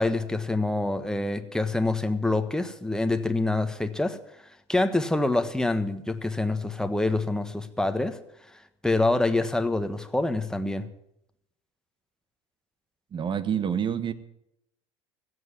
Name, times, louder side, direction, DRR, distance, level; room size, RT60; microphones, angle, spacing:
voice 1, 0.0-4.2 4.7-8.2 8.8-10.9, left 2 dB, 5° left, 9 dB, 1.4 m, -26 dB
voice 2, 13.1-14.1, right 8 dB, 35° right, 14 dB, 1.4 m, -27 dB
16.0 x 8.0 x 9.7 m, 0.80 s
hypercardioid pair, 80°, 15 cm